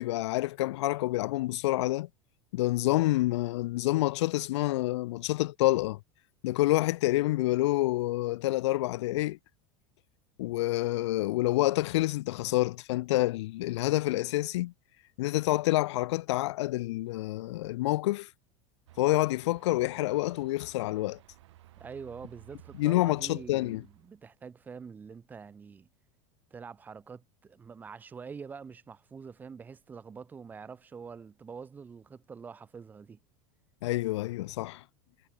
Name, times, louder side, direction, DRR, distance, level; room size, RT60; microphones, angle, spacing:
voice 1, 0.0-2.1 2.5-6.0 6.4-9.4 10.4-14.7 15.2-18.3 19.0-21.2 22.8-23.8 33.8-34.8, left 18 dB, 85° left, 0.6 m, -28 dB
sound 1, 18.9-24.2, right 15 dB, 90° right, 7.7 m, -56 dB
voice 2, 21.8-25.9 26.5-33.2, right 5 dB, 10° right, 2.7 m, -45 dB
supercardioid pair, 180°, 14 cm